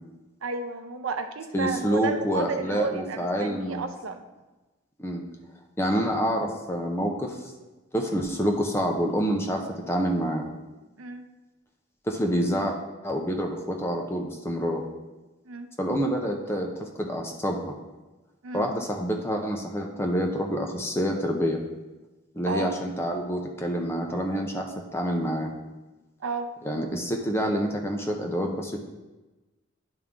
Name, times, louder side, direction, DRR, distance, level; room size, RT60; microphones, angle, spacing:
voice 1, 0.4-4.2 11.0-11.3 15.5-15.7 18.4-18.7 22.5-22.7 26.2-26.5, right 4 dB, 80° right, 7 dB, 0.5 m, -32 dB
voice 2, 1.5-3.8 5.0-5.2 5.8-7.4 7.9-10.5 12.1-12.8 13.0-14.8 15.8-17.7 18.5-21.6 22.3-25.5 26.6-28.8, equal, 10° left, 1 dB, 0.6 m, -27 dB
10.5 x 3.6 x 3.7 m, 1.2 s
head